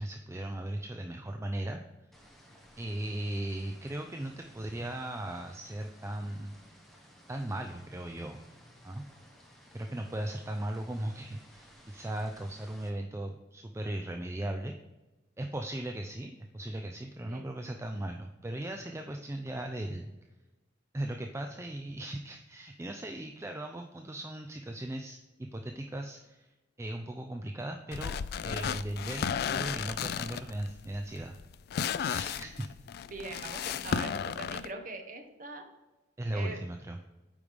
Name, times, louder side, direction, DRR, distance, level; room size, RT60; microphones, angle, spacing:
voice 1, 0.0-1.8 2.8-6.5 7.3-8.4 8.8-9.1 9.7-14.7 15.4-20.1 20.9-26.5 26.8-28.2 28.4-31.4 32.0-32.7 36.2-37.0, right 1 dB, 15° right, 4 dB, 0.4 m, -37 dB
sound 1, 2.1-12.9, equal, ahead, 1.1 m, -57 dB
sound 2, 27.9-34.7, left 7 dB, 60° left, 0.3 m, -34 dB
voice 2, 33.1-35.6 36.3-36.6, right 2 dB, 45° right, 4 dB, 1.2 m, -42 dB
8.6 x 4.9 x 3.5 m, 1.1 s
head